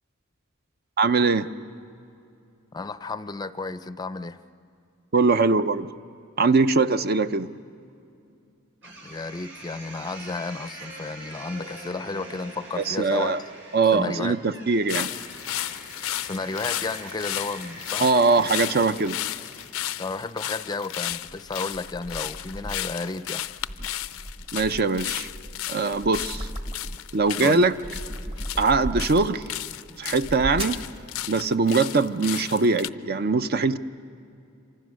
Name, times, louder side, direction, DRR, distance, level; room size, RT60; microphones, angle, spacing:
voice 1, 1.0-1.5 5.1-5.9 6.4-7.5 12.8-13.4 13.7-15.1 18.0-19.2 24.5-25.3 25.7-26.5 27.1-27.7 28.6-29.4 30.0-30.8 31.3-33.8, right 4 dB, 50° right, 11 dB, 0.6 m, -22 dB
voice 2, 2.7-4.4 9.0-13.3 13.9-14.4 16.2-18.1 20.0-23.5 27.4-27.6, left 3 dB, 20° left, 13 dB, 0.5 m, -32 dB
sound 1, 8.8-19.9, right 1 dB, 65° right, 7.5 m, -44 dB
sound 2, 14.9-32.9, left 13 dB, 85° left, 0.5 m, -34 dB
sound 3, 21.1-23.0 23.5-27.2 27.6-29.5 30.1-30.9, equal, 25° right, 1.2 m, -36 dB
27.0 x 25.0 x 6.3 m, 2.6 s
head